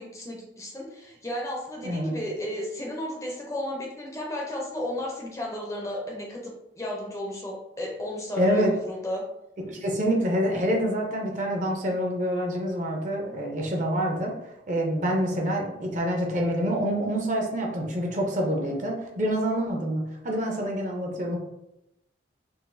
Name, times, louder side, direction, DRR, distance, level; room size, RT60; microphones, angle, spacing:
voice 1, 0.0-9.2, left 1 dB, 15° left, -1 dB, 0.5 m, -34 dB
voice 2, 1.8-2.2 8.4-8.7 9.6-14.3 14.7-21.4, equal, 40° right, 1 dB, 0.6 m, -26 dB
3.9 x 2.5 x 2.5 m, 0.87 s
head